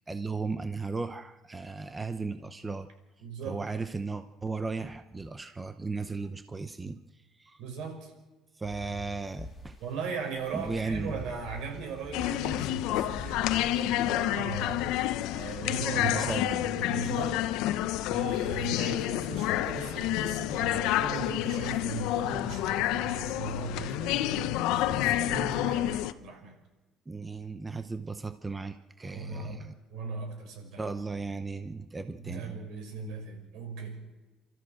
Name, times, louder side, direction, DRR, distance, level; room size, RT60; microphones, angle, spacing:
voice 1, 0.1-2.9 3.5-7.0 7.4-7.6 8.5-9.8 10.5-11.2 15.9-16.8 27.1-29.7 30.8-32.7, right 4 dB, 15° right, 10 dB, 0.7 m, -36 dB
voice 2, 3.2-3.6 7.6-8.1 9.8-14.8 15.3-16.3 16.6-17.4 18.1-26.6 29.1-30.8 32.2-34.1, right 5 dB, 70° right, 3 dB, 6.2 m, -38 dB
sound 1, 8.6-13.7, left 2 dB, 10° left, 3.2 m, -45 dB
sound 2, 12.1-26.1, left 14 dB, 85° left, 0.8 m, -29 dB
29.0 x 14.0 x 7.7 m, 1.1 s
cardioid pair, 170°, 0 cm